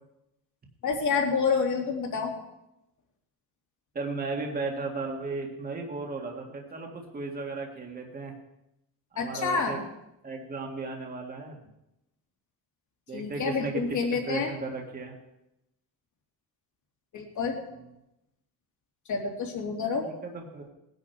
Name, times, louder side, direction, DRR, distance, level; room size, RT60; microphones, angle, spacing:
voice 1, 0.8-2.3 9.2-9.8 13.1-14.5 17.1-17.5 19.1-20.1, left 5 dB, 55° left, 1 dB, 3.0 m, -28 dB
voice 2, 3.9-8.3 9.1-9.8 10.2-11.6 13.1-14.0 14.3-15.1 17.7-17.8 20.0-20.7, right 3 dB, 25° right, 1 dB, 1.9 m, -35 dB
20.0 x 10.5 x 4.6 m, 0.88 s
cardioid pair, 175°, 36 cm